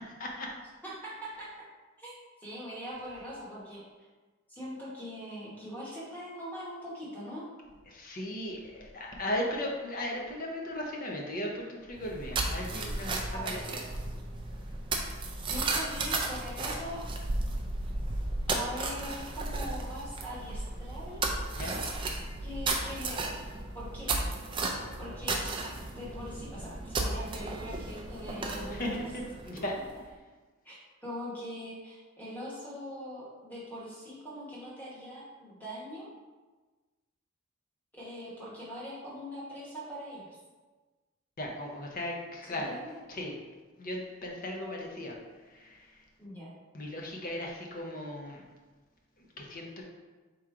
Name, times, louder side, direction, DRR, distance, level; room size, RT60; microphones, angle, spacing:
voice 1, 0.1-0.5 7.9-13.8 21.6-21.8 28.7-29.8 41.4-42.8 43.1-43.4 43.8-45.2 45.5-45.9 46.7-48.4 49.4-49.8, left 1 dB, 40° left, 0 dB, 0.6 m, -37 dB
voice 2, 0.8-1.5 2.0-2.1 2.4-3.8 4.5-7.5 13.3-13.7 15.4-17.0 18.5-21.4 22.4-23.3 23.7-24.2 25.0-25.4 25.9-28.8 30.6-30.8 31.0-36.1 37.9-40.4 42.5-42.9 46.2-46.6, equal, 10° left, -8 dB, 1.2 m, -42 dB
sound 1, 12.0-29.9, right 2 dB, 25° right, 0.3 m, -34 dB
3.7 x 3.0 x 4.6 m, 1.3 s
head